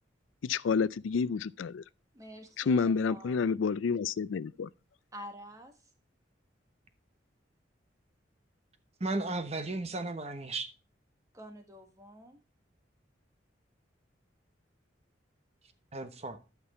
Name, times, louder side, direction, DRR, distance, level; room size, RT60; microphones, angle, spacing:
voice 1, 0.4-1.8 2.6-4.7, left 5 dB, 85° left, 0.4 m, -29 dB
voice 2, 2.1-3.5 5.1-5.9 11.3-12.4, equal, 15° right, 1.5 m, -48 dB
voice 3, 9.0-10.7 15.9-16.4, right 2 dB, 35° right, 1.0 m, -34 dB
12.5 x 6.0 x 4.2 m
head